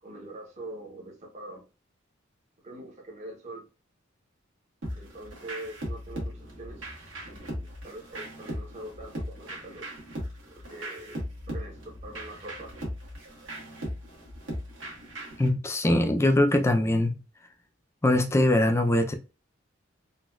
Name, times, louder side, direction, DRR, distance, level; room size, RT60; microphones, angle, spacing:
voice 1, 0.0-1.6 2.6-3.7 4.9-6.9 7.2-9.9 10.5-12.7, right 1 dB, 35° right, 0.7 m, -43 dB
sound 1, 4.8-15.5, equal, 85° right, 1.2 m, -38 dB
voice 2, 15.4-17.2 18.0-19.1, left 1 dB, 15° left, 0.4 m, -22 dB
4.0 x 2.2 x 2.3 m
head